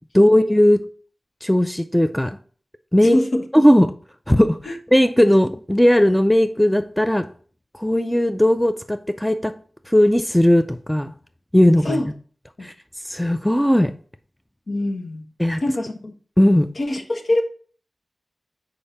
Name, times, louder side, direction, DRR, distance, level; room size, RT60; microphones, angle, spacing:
voice 1, 0.1-0.9 1.4-2.4 2.9-3.2 3.5-3.9 4.3-7.3 7.7-9.5 9.9-11.1 11.5-12.0 12.6-12.7 13.0-13.9 15.4-15.6 16.4-16.7, equal, 5° left, 0.4 m, -17 dB
voice 2, 3.1-3.4 4.6-4.7 11.8-12.1 12.6-12.7 14.7-15.2 15.6-16.1 16.8-17.4, left 1 dB, 70° left, 1.1 m, -23 dB
5.3 x 4.7 x 4.1 m
wide cardioid pair, 90°, 0 cm